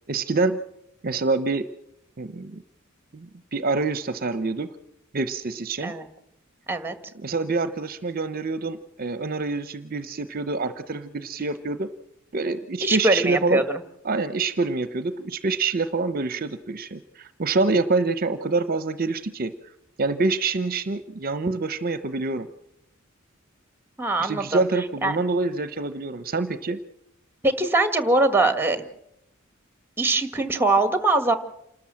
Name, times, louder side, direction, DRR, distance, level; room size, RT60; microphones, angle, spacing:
voice 1, 0.1-0.6 1.0-1.7 2.2-2.6 3.1-4.7 5.1-5.9 7.2-11.9 12.3-13.6 14.0-19.5 20.0-22.5 24.2-26.8, right 3 dB, 45° right, 12 dB, 0.8 m, -26 dB
voice 2, 12.8-13.8 24.0-24.6 25.0-25.2 27.4-28.8 30.0-31.4, right 2 dB, 10° right, 10 dB, 1.6 m, -22 dB
27.5 x 13.0 x 7.6 m, 0.81 s
head